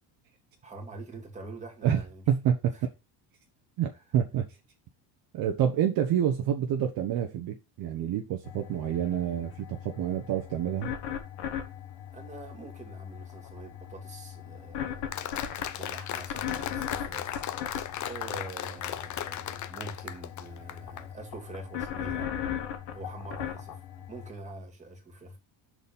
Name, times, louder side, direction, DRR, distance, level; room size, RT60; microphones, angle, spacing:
voice 1, 0.6-2.2 2.7-2.8 12.1-17.4 18.0-22.3 22.9-23.8 24.1-25.4, right 2 dB, 15° right, 2.4 m, -44 dB
voice 2, 1.8-2.7 3.8-4.5 5.3-10.9, right 9 dB, 50° right, 1.0 m, -28 dB
sound 1, 8.4-24.3, left 9 dB, 60° left, 1.6 m, -39 dB
Applause, 15.1-21.0, left 11 dB, 40° left, 0.7 m, -36 dB
6.1 x 4.2 x 5.4 m
cardioid pair, 125°, 45 cm